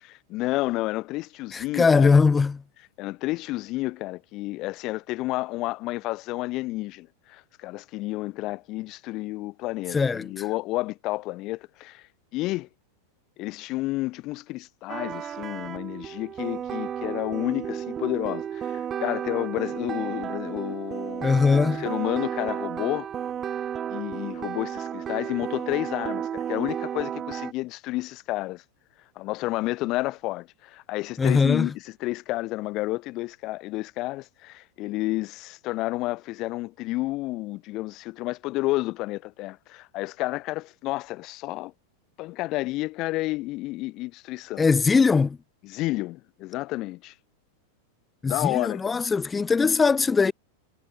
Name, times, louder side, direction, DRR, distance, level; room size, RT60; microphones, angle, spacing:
voice 1, 0.0-2.2 3.0-12.0 12.3-12.7 13.4-21.4 21.8-23.1 23.9-28.6 29.2-41.7 42.2-44.6 45.6-47.1 48.2-49.0, left 19 dB, 40° left, 4.7 m, -31 dB
voice 2, 1.5-2.6 9.9-10.3 21.2-21.8 31.2-31.7 44.6-45.4 48.2-50.3, left 5 dB, 15° left, 1.7 m, -21 dB
sound 1, 14.9-27.5, right 9 dB, 25° right, 2.2 m, -33 dB
figure-of-eight pair, 90°, 0 cm